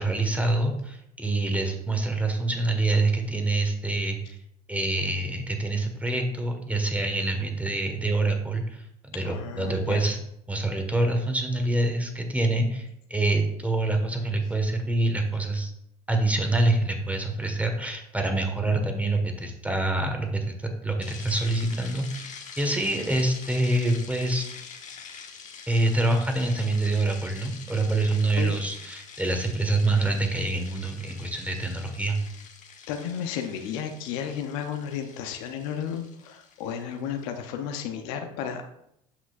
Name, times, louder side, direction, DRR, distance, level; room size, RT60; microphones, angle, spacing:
voice 1, 0.0-4.4 4.7-8.8 9.1-10.2 10.5-15.7 16.1-24.5 25.7-32.2, right 2 dB, 10° right, 4 dB, 1.5 m, -26 dB
voice 2, 9.2-10.0 28.3-28.5 32.9-38.7, left 8 dB, 70° left, 6 dB, 0.8 m, -33 dB
sound 1, 21.0-37.3, left 6 dB, 40° left, 1.2 m, -45 dB
8.0 x 5.8 x 2.5 m, 0.77 s
hypercardioid pair, 75°, 19 cm